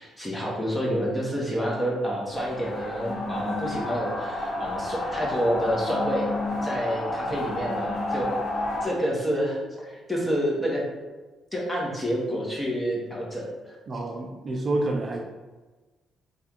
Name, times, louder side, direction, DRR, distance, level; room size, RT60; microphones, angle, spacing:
voice 1, 0.0-6.3 6.6-8.4 8.8-10.8 11.5-13.7, equal, 10° left, -3 dB, 1.1 m, -28 dB
sound 1, 2.3-8.8, left 2 dB, 55° left, 0.8 m, -30 dB
voice 2, 13.9-15.2, right 2 dB, 45° right, 0 dB, 0.5 m, -28 dB
3.3 x 2.4 x 4.4 m, 1.2 s
cardioid pair, 90°, 0 cm